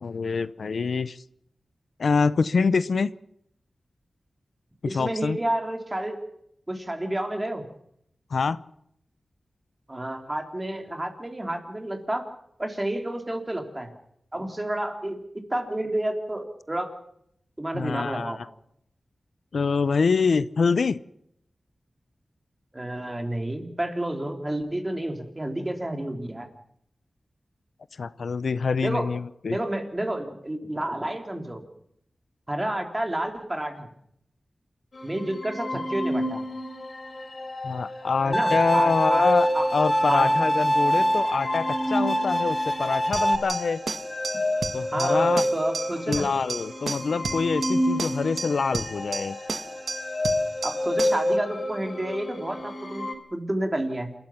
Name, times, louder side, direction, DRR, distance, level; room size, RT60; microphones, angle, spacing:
voice 1, 0.0-1.2 2.0-3.1 4.8-5.4 8.3-8.6 17.7-18.3 19.5-21.0 28.0-29.6 37.6-43.8 44.7-45.4 46.1-49.4, left 5 dB, 85° left, 16 dB, 0.7 m, -25 dB
voice 2, 4.9-6.2 6.7-7.6 9.9-12.3 12.6-13.9 14.3-15.2 15.5-16.9 17.6-18.4 22.7-26.5 28.8-29.1 29.5-31.6 32.5-33.9 35.0-36.4 38.2-39.7 40.1-40.3 44.9-46.3 50.6-54.1, right 1 dB, 20° right, 4 dB, 3.4 m, -30 dB
sound 1, 34.9-53.1, left 1 dB, 55° left, 4.2 m, -30 dB
Bowed string instrument, 38.3-43.4, equal, 10° left, 1.7 m, -24 dB
sound 2, 43.1-51.3, right 4 dB, 80° right, 1.4 m, -34 dB
28.0 x 13.5 x 7.2 m, 0.73 s
wide cardioid pair, 85°, 0 cm